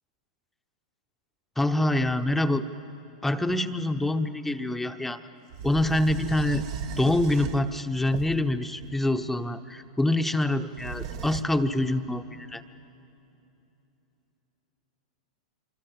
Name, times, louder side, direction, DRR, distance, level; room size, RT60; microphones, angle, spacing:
voice 1, 1.6-2.7 3.2-5.2 5.6-6.6 7.0-12.6, left 1 dB, 5° left, 9 dB, 0.9 m, -25 dB
sound 1, 5.5-9.2 10.8-11.4, right 8 dB, 55° right, 1.2 m, -36 dB
26.0 x 24.5 x 7.6 m, 2.9 s
hypercardioid pair, 105°, 4 cm